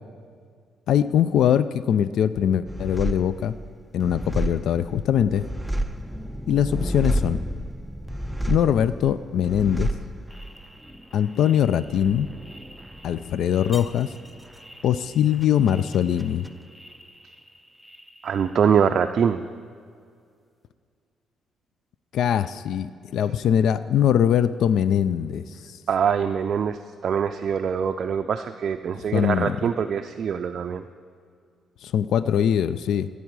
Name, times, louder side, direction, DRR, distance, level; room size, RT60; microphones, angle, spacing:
voice 1, 0.9-3.6 3.9-5.5 6.5-7.4 8.5-9.9 11.1-12.3 13.0-14.1 14.8-16.5 22.1-25.8 29.0-29.6 31.8-33.1, left 9 dB, 75° left, 15 dB, 0.3 m, -22 dB
sound 1, 2.7-17.6 17.8-18.6, right 1 dB, ahead, 0.5 m, -32 dB
voice 2, 18.2-19.4 25.9-30.8, right 7 dB, 55° right, 6 dB, 0.4 m, -24 dB
14.5 x 8.3 x 4.7 m, 2.2 s
cardioid pair, 90°, 0 cm